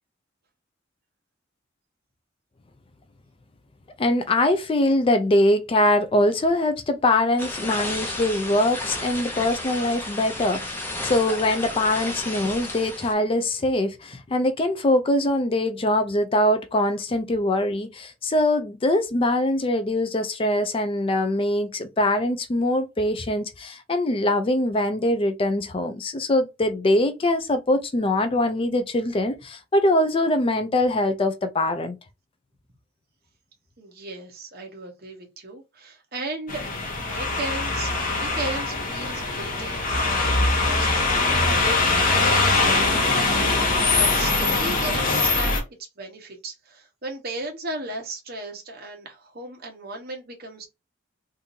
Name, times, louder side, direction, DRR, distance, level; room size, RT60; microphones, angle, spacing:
voice 1, 4.0-32.0, left 1 dB, 25° left, 0.4 m, -23 dB
sound 1, 7.4-13.1, left 1 dB, 10° left, 0.8 m, -32 dB
voice 2, 33.8-36.6 37.0-40.9 41.2-45.6 46.0-50.7, right 2 dB, 50° right, 1.2 m, -36 dB
sound 2, 36.5-45.6, left 3 dB, 45° left, 1.1 m, -22 dB
3.6 x 2.6 x 2.7 m
head